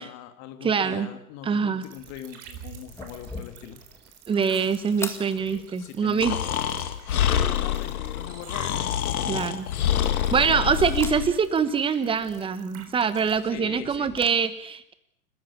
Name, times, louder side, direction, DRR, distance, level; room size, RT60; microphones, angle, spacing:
voice 1, 0.0-3.8 5.8-6.5 7.1-8.8 13.5-14.1, left 11 dB, 35° left, 8 dB, 2.6 m, -41 dB
voice 2, 0.6-1.1 1.5-1.9 4.3-6.4 9.3-9.7 10.3-14.9, right 6 dB, 10° right, 14 dB, 1.1 m, -24 dB
sound 1, 1.8-13.4, right 8 dB, 30° right, 3.7 m, -48 dB
sound 2, 2.8-14.3, left 3 dB, 5° left, 1.9 m, -45 dB
Breathing, 6.2-11.3, left 10 dB, 65° left, 2.3 m, -26 dB
29.5 x 14.0 x 8.7 m, 0.74 s
hypercardioid pair, 120°, 48 cm